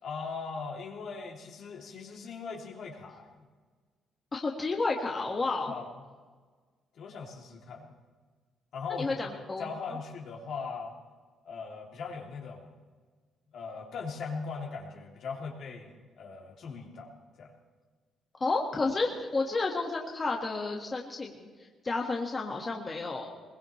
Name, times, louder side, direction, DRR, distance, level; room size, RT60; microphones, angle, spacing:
voice 1, 0.0-3.3 5.7-5.9 6.9-7.9 8.7-10.9 11.4-12.7 13.5-17.1 17.4-17.5, left 5 dB, 70° left, -1 dB, 3.1 m, -40 dB
voice 2, 4.3-5.7 8.9-9.7 18.4-23.3, left 3 dB, 30° left, 0 dB, 1.8 m, -31 dB
21.0 x 20.5 x 3.3 m, 1.5 s
cardioid pair, 90°, 0 cm